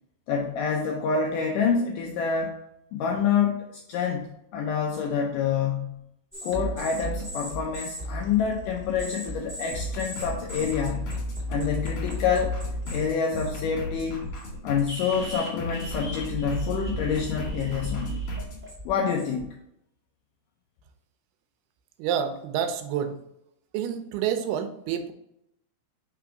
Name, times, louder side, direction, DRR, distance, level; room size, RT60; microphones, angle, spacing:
voice 1, 0.3-2.6 2.9-4.3 4.5-6.0 6.4-11.2 11.5-12.6 12.9-14.2 14.6-18.2 18.9-19.5, left 6 dB, 80° left, 1 dB, 1.9 m, -27 dB
sound 1, 6.3-13.0 13.3-13.7 14.3-14.5 14.9-19.4, right 1 dB, 10° right, 0.6 m, -35 dB
sound 2, 9.7-18.6, left 2 dB, 55° left, 2.8 m, -37 dB
voice 2, 22.0-23.2 23.7-25.1, right 9 dB, 85° right, 8 dB, 2.6 m, -28 dB
5.9 x 3.6 x 4.7 m, 0.79 s
omnidirectional pair, 4.5 m